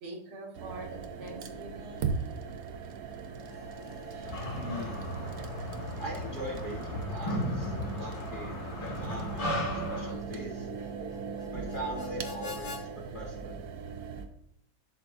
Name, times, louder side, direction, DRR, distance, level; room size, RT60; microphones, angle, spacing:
voice 1, 0.0-2.2, right 2 dB, 80° right, 0 dB, 2.2 m, -44 dB
sound 1, 0.5-14.2, right 6 dB, 65° right, 0.9 m, -39 dB
Harmonica, 3.3-12.8, left 6 dB, 60° left, 1.4 m, -49 dB
sound 2, 4.2-10.1, equal, 80° left, 3.0 m, -35 dB
voice 2, 4.5-5.1 6.0-10.7 11.5-13.5, equal, 30° left, -3 dB, 1.2 m, -41 dB
11.0 x 5.7 x 2.6 m, 0.75 s
omnidirectional pair, 2.3 m